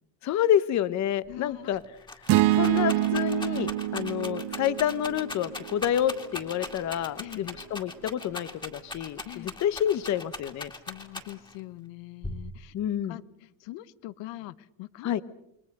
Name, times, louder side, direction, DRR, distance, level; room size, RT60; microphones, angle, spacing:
voice 1, 0.2-1.8 2.5-10.7 12.7-13.2 15.0-15.2, left 10 dB, 40° left, 16 dB, 0.9 m, -28 dB
voice 2, 1.3-1.8 7.2-7.5 9.2-9.6 10.9-12.7 13.1-15.2, left 17 dB, 85° left, 16 dB, 1.0 m, -43 dB
Rattle, 1.3-1.4 1.7-11.6 12.2-12.9, left 2 dB, 10° left, 2.2 m, -40 dB
sound 1, 2.3-6.6, right 15 dB, 65° right, 1.0 m, -27 dB
29.0 x 21.5 x 6.6 m, 0.80 s
cardioid pair, 170°, 44 cm